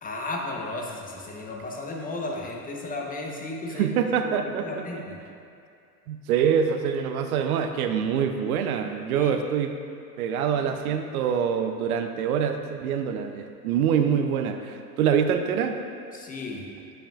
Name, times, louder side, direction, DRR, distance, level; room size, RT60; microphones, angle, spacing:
voice 1, 0.0-3.9 4.2-4.3 4.6-5.2 9.1-9.3 16.1-16.7, left 2 dB, 20° left, 0 dB, 0.7 m, -34 dB
voice 2, 3.8-4.7 6.1-9.7 10.2-15.8, right 7 dB, 70° right, 7 dB, 0.5 m, -25 dB
8.4 x 5.4 x 2.3 m, 2.4 s
hypercardioid pair, 80°, 46 cm